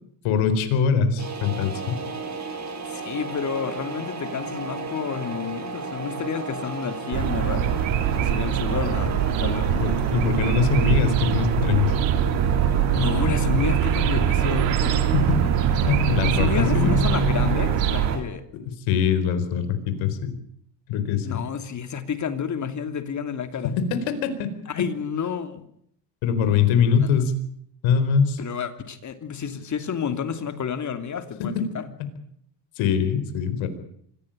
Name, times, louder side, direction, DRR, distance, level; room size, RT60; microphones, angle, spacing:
voice 1, 0.2-2.0 9.8-11.9 15.3-16.9 18.6-20.4 20.9-21.4 23.6-24.5 24.8-24.9 26.2-27.3 27.8-28.4 31.4-31.7 32.8-33.7, left 6 dB, 70° left, 10 dB, 4.5 m, -23 dB
sound 1, 1.2-18.2, right 4 dB, 35° right, 5.8 m, -34 dB
voice 2, 2.9-7.8 8.2-9.7 12.9-15.1 16.2-18.4 21.2-23.7 24.7-25.6 26.9-27.2 28.4-31.9, left 7 dB, 35° left, 9 dB, 3.0 m, -30 dB
sound 2, 7.1-18.2, right 8 dB, 65° right, 3.0 m, -22 dB
25.0 x 17.5 x 9.0 m, 0.69 s
supercardioid pair, 105°, 48 cm